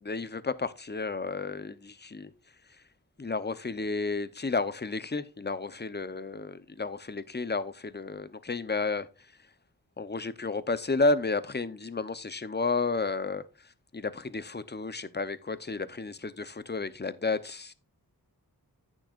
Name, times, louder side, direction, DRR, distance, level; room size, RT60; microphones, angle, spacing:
voice 1, 0.0-2.3 3.2-9.1 10.0-13.4 13.9-17.7, left 3 dB, 25° left, 0.8 m, -32 dB
10.5 x 9.0 x 2.5 m
wide cardioid pair, 60°, 38 cm